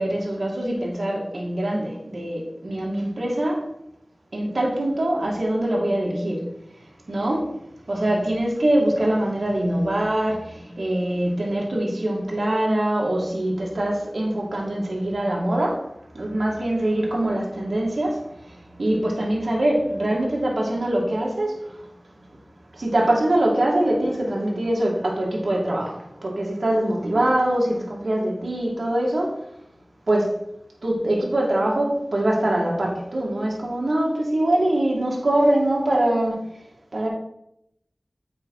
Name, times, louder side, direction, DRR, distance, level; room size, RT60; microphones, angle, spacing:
voice 1, 0.0-3.6 4.3-6.5 7.1-7.5 7.9-15.9 16.1-21.6 22.7-29.3 30.1-30.4 30.8-36.4 36.9-37.1, right 1 dB, 80° right, -3 dB, 1.8 m, -23 dB
7.9 x 5.0 x 4.7 m, 0.79 s
wide cardioid pair, 40°, 0 cm